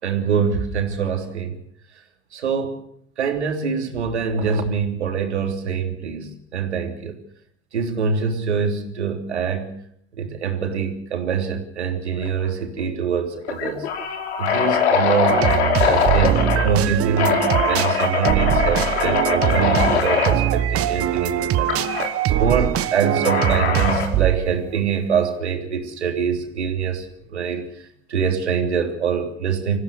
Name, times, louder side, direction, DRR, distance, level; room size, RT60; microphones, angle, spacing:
voice 1, 0.0-1.5 2.3-2.8 3.2-7.2 7.7-9.8 10.2-13.9 14.4-15.5 15.8-22.1 22.4-27.1 27.3-27.6 28.1-29.8, right 6 dB, 90° right, 4 dB, 3.4 m, -24 dB
sound 1, 12.2-12.5 12.8-12.9 13.4-16.7 17.2-20.4 21.7-22.1 23.2-24.2, left 6 dB, 80° left, 3.7 m, -22 dB
sound 2, 15.3-24.5, right 12 dB, 45° right, 1.3 m, -22 dB
25.5 x 15.5 x 6.9 m, 0.67 s
hypercardioid pair, 75°, 33 cm